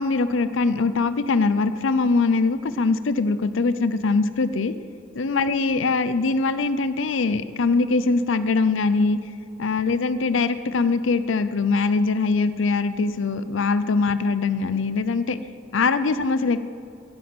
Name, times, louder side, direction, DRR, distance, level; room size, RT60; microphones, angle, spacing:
voice 1, 0.0-4.7 5.1-9.2 9.6-15.4 15.7-16.6, left 4 dB, 65° left, 13 dB, 0.6 m, -22 dB
13.5 x 10.5 x 6.1 m, 2.5 s
head